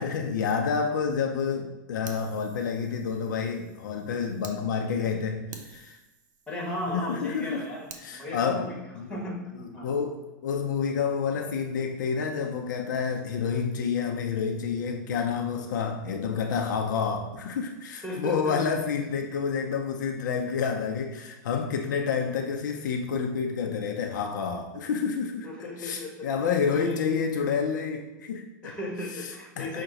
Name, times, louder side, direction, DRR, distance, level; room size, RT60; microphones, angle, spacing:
voice 1, 0.0-6.0 6.9-7.6 8.0-8.7 8.9-9.2 9.6-28.8 29.6-29.8, left 6 dB, 75° left, 4 dB, 0.5 m, -29 dB
Fire, 2.0-4.6 5.0-5.1 5.5-8.1, right 5 dB, 75° right, 0.6 m, -50 dB
voice 2, 6.5-7.9 8.2-9.4 9.7-10.0 18.0-18.6 25.4-26.3 26.7-27.0 28.6-29.8, left 1 dB, 10° left, -1 dB, 1.3 m, -35 dB
5.7 x 2.2 x 3.9 m, 1.1 s
hypercardioid pair, 115°, 10 cm